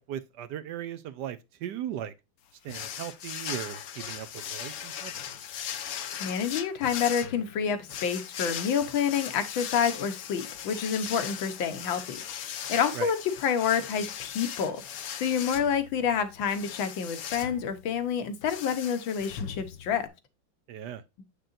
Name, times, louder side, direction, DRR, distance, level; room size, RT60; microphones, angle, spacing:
voice 1, 0.0-2.1 2.6-5.1 12.9-13.1 20.7-21.0, right 10 dB, 70° right, 1.1 m, -37 dB
sound 1, 2.7-20.1, left 9 dB, 60° left, 1.0 m, -39 dB
voice 2, 6.2-13.2 13.4-14.8 15.2-20.1, left 7 dB, 80° left, 1.8 m, -28 dB
7.4 x 6.7 x 2.5 m
omnidirectional pair, 2.1 m